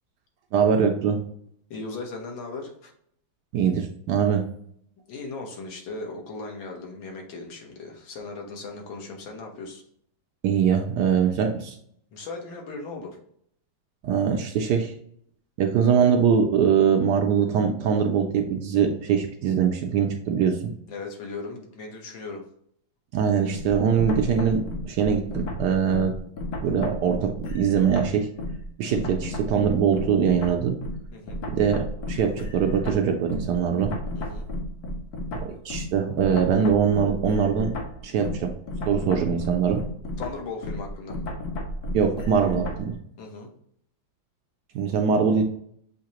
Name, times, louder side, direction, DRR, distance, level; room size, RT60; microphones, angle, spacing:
voice 1, 0.5-1.2 3.5-4.5 10.4-11.8 14.0-14.9 15.6-20.7 23.1-26.1 26.6-28.3 28.8-30.8 31.5-33.9 35.3-37.8 38.0-38.5 38.9-39.8 41.9-43.0 44.7-45.4, right 7 dB, 75° right, 4 dB, 1.0 m, -22 dB
voice 2, 1.7-2.9 5.1-9.8 12.1-13.2 20.9-22.4 31.1-31.4 34.2-34.5 40.2-41.2 43.2-43.5, left 3 dB, 80° left, 1 dB, 1.8 m, -37 dB
sound 1, 23.5-28.7 28.9-42.9, left 1 dB, 65° left, 1.1 m, -33 dB
6.5 x 2.8 x 2.9 m, 0.67 s
omnidirectional pair, 2.1 m